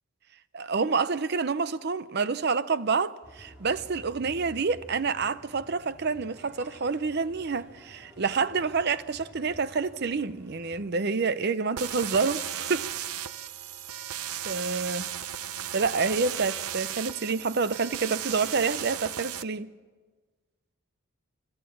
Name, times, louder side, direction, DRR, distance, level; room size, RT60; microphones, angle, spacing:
voice 1, 0.5-12.9 14.4-15.1 15.7-19.7, right 4 dB, 50° right, 0.6 m, -28 dB
sound 1, 3.2-10.9, equal, 10° right, 2.4 m, -52 dB
sound 2, 11.8-19.4, right 11 dB, 90° right, 0.7 m, -35 dB
29.0 x 13.0 x 7.1 m
head